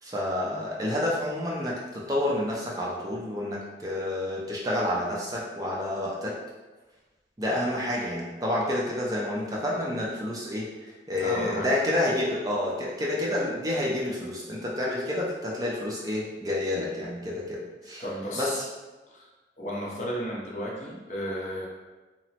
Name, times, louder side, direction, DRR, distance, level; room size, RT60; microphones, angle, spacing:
voice 1, 0.0-6.4 7.4-18.0 18.3-18.6, left 1 dB, 20° right, -5 dB, 0.4 m, -29 dB
voice 2, 11.2-11.7 18.0-18.7 19.1-19.3 19.6-21.7, equal, 40° left, -3 dB, 0.5 m, -33 dB
2.9 x 2.1 x 2.7 m, 1.2 s
head